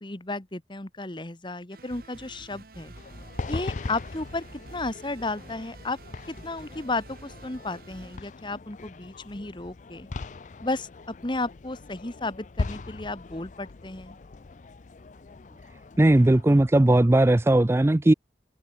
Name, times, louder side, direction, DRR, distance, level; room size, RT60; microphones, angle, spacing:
voice 1, 0.0-2.9 3.5-4.4 4.7-6.0 6.4-10.1 10.6-10.9 11.2-14.2, left 2 dB, 25° left, 1.4 m, -33 dB
sound 1, 1.7-8.2, right 2 dB, 55° right, 1.5 m, -49 dB
sound 2, 2.9-16.4, left 3 dB, 45° left, 0.5 m, -39 dB
voice 2, 16.0-18.1, right 1 dB, 15° right, 0.4 m, -18 dB
head